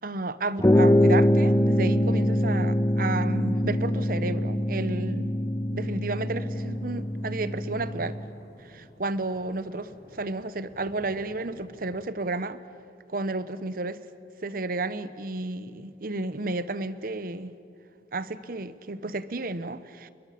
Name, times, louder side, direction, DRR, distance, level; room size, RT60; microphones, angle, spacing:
voice 1, 0.0-5.3 5.7-8.2 8.6-12.6 13.1-14.0 14.4-17.5 18.1-20.1, right 2 dB, 55° right, 14 dB, 1.0 m, -32 dB
sound 1, 0.6-8.3, equal, 15° left, 0.6 m, -24 dB
sound 2, 6.5-12.1, equal, 60° left, 6.7 m, -51 dB
29.5 x 22.0 x 8.5 m, 2.4 s
head